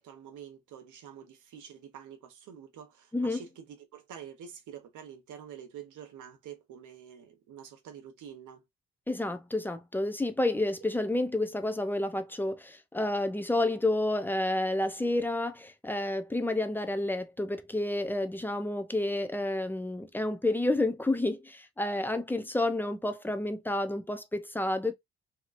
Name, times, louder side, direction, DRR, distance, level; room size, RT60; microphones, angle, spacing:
voice 1, 0.0-8.6, right 8 dB, 80° right, 1.0 m, -47 dB
voice 2, 9.1-24.9, left 2 dB, 5° left, 0.5 m, -30 dB
2.9 x 2.8 x 2.5 m
cardioid pair, 90°, 30 cm